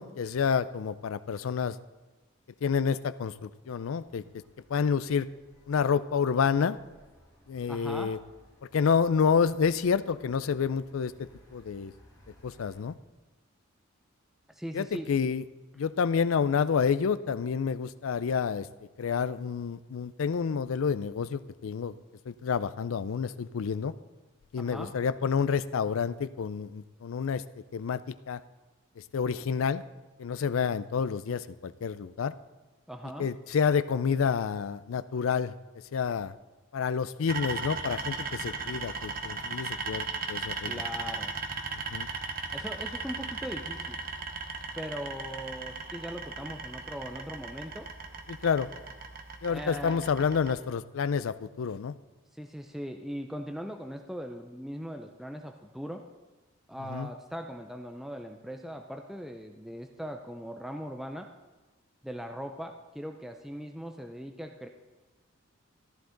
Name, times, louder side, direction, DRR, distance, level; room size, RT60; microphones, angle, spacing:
voice 1, 0.0-1.8 2.6-4.4 4.7-5.3 5.7-6.8 7.5-8.2 8.7-11.9 12.4-12.9 14.7-15.4 15.8-18.7 19.0-22.0 22.3-23.9 24.5-27.4 27.7-28.4 29.1-29.8 30.2-32.3 33.2-35.5 35.9-36.3 36.7-40.8 41.9-42.1 48.3-48.7 49.4-52.0 56.9-57.1, left 6 dB, 80° left, 15 dB, 0.4 m, -29 dB
sound 1, 4.0-12.8, equal, 15° left, 3.2 m, -60 dB
voice 2, 7.7-8.1 14.5-15.1 24.6-24.9 32.9-33.3 40.7-41.3 42.5-44.0 44.8-47.9 49.5-50.1 52.3-56.1 56.7-61.3 62.0-64.7, equal, ahead, 4 dB, 0.4 m, -40 dB
sound 2, 37.3-50.5, right 4 dB, 45° right, 0.9 m, -37 dB
14.0 x 11.0 x 3.9 m, 1.2 s
head